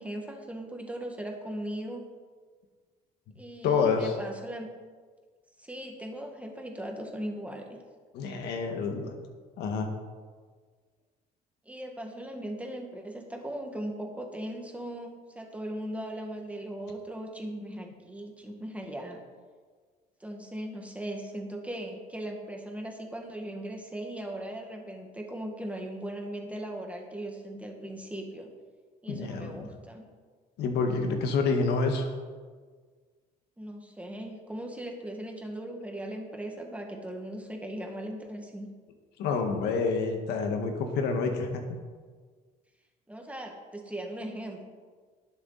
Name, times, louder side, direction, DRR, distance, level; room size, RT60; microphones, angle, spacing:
voice 1, 0.0-2.1 3.4-4.7 5.6-7.7 11.7-19.2 20.2-28.5 29.0-30.1 33.6-38.7 43.1-44.6, right 1 dB, 10° right, 2 dB, 1.8 m, -38 dB
voice 2, 3.6-4.1 8.1-9.1 9.6-9.9 29.1-29.7 30.6-32.1 39.2-41.6, left 4 dB, 80° left, 4 dB, 1.7 m, -28 dB
19.5 x 7.1 x 4.1 m, 1.5 s
cardioid pair, 110°, 17 cm